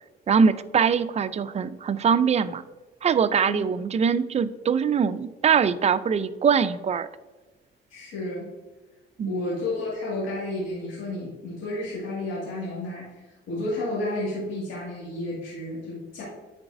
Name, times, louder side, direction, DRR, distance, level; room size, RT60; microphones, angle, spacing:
voice 1, 0.3-2.6 3.0-7.1 9.2-9.4, right 6 dB, 35° right, 12 dB, 0.4 m, -22 dB
voice 2, 7.9-8.4 9.3-16.2, left 2 dB, 85° left, -6 dB, 1.9 m, -31 dB
9.6 x 4.0 x 2.6 m, 1.2 s
cardioid pair, 90°, 20 cm